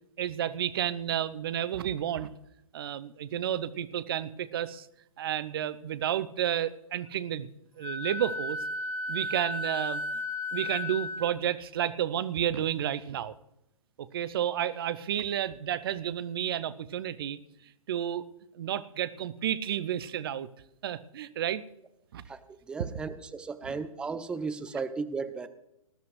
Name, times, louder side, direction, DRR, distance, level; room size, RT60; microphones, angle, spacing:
voice 1, 0.2-2.3 2.7-4.9 5.2-7.5 7.8-8.6 9.1-10.0 10.5-13.3 14.1-17.4 17.9-18.2 18.5-20.5 20.8-21.6 22.1-22.2 23.6-23.8, right 10 dB, 45° right, 15 dB, 0.7 m, -31 dB
Wind instrument woodwind instrument, 7.8-11.3, left 2 dB, 80° left, 1.5 m, -34 dB
voice 2, 22.3-25.5, right 4 dB, 5° right, 12 dB, 0.5 m, -35 dB
20.0 x 12.0 x 3.2 m, 0.84 s
figure-of-eight pair, 120°, 18 cm